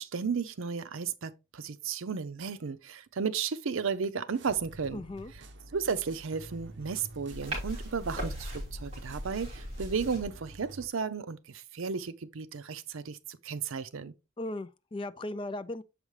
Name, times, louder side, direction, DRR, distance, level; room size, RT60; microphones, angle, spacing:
voice 1, 0.0-5.0 5.7-14.1, right 5 dB, 80° right, 0.6 m, -34 dB
sound 1, 4.3-10.9, right 2 dB, 60° right, 0.9 m, -50 dB
voice 2, 4.9-5.3 14.4-15.8, left 2 dB, 25° left, 0.3 m, -37 dB
sound 2, 7.3-10.3, equal, 30° right, 3.1 m, -38 dB
7.3 x 5.0 x 3.1 m
head